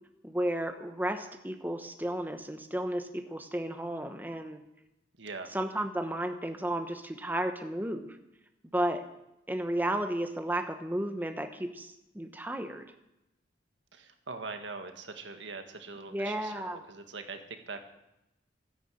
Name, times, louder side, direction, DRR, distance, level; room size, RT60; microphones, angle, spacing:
voice 1, 0.2-4.6 5.5-8.2 8.7-9.0 9.5-12.9 16.1-16.8, right 1 dB, 10° right, 6 dB, 1.0 m, -33 dB
voice 2, 5.2-5.5 13.9-17.8, right 4 dB, 80° right, 6 dB, 1.7 m, -42 dB
13.5 x 11.0 x 7.8 m, 0.89 s
head